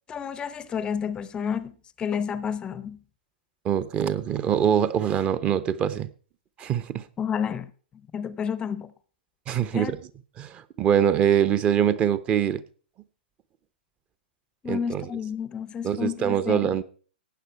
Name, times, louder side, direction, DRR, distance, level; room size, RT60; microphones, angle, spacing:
voice 1, 0.1-3.0 7.2-7.7 8.1-8.9 9.7-10.0 14.6-16.7, left 7 dB, 15° left, 0.6 m, -30 dB
voice 2, 3.6-6.1 6.6-7.0 9.5-10.0 10.4-12.6 14.7-15.0 15.8-16.8, right 9 dB, 20° right, 0.7 m, -24 dB
15.5 x 9.6 x 4.5 m
figure-of-eight pair, 115°, 5 cm